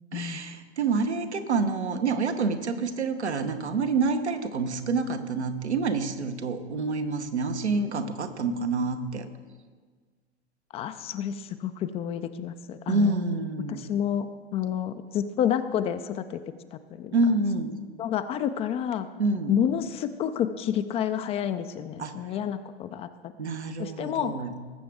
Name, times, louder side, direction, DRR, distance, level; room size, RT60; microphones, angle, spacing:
voice 1, 0.1-9.3 12.9-13.8 17.1-17.8 19.2-19.5 22.0-22.2 23.4-24.6, right 3 dB, 85° right, 7 dB, 1.1 m, -27 dB
voice 2, 10.7-13.2 13.7-14.3 14.5-16.4 16.7-17.2 18.0-19.1 19.5-23.1 23.8-24.4, left 9 dB, 20° left, 11 dB, 0.3 m, -29 dB
18.5 x 7.7 x 3.5 m, 1.5 s
figure-of-eight pair, 100°, 33 cm